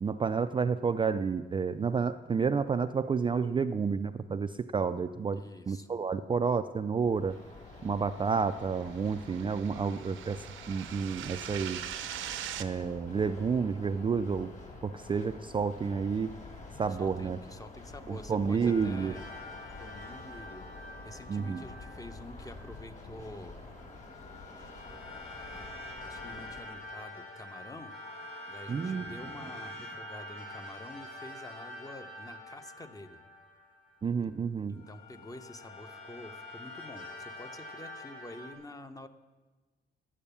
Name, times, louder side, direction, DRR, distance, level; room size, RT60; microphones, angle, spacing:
voice 1, 0.0-7.4 7.8-11.9 12.6-14.5 14.8-16.3 16.8-17.4 18.1-19.1 21.3-21.6 28.7-29.1 34.0-34.8, right 5 dB, 25° right, 9 dB, 0.4 m, -30 dB
voice 2, 5.3-5.9 16.8-19.2 19.8-23.6 25.5-25.7 26.0-27.9 28.5-33.2 34.7-39.1, left 1 dB, 15° left, 9 dB, 0.8 m, -48 dB
sound 1, 6.9-26.7, left 2 dB, 35° left, 2.7 m, -48 dB
sound 2, 8.2-12.7, right 11 dB, 80° right, 0.8 m, -42 dB
sound 3, 18.6-22.8 23.7-34.2 34.7-38.5, left 1 dB, 70° left, 4.0 m, -46 dB
11.0 x 8.7 x 6.9 m, 1.3 s
cardioid pair, 90°, 20 cm